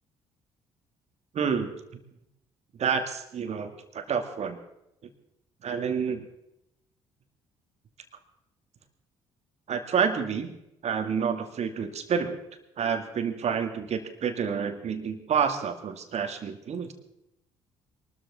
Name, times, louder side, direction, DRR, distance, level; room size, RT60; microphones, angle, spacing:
voice 1, 1.3-1.7 2.8-4.6 5.6-6.2 9.7-10.5 10.8-12.4 12.8-16.9, right 6 dB, 50° right, 7 dB, 2.3 m, -29 dB
22.5 x 13.5 x 4.2 m, 0.82 s
hypercardioid pair, 50°, 14 cm